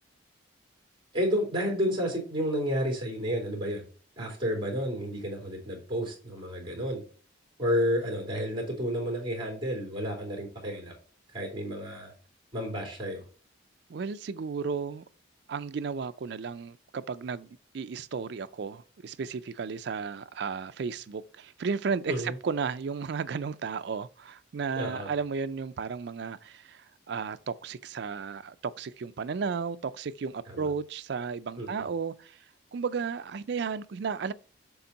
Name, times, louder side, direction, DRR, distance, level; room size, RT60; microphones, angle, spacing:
voice 1, 1.1-3.9 4.2-7.0 7.6-10.9 11.3-12.1 12.5-13.2 22.1-22.3 24.8-25.1 30.5-30.7 31.6-31.7, equal, 25° right, 2.7 m, -31 dB
voice 2, 13.9-15.0 15.5-32.4 32.7-34.3, right 5 dB, 55° right, 0.4 m, -34 dB
7.0 x 3.6 x 4.0 m
head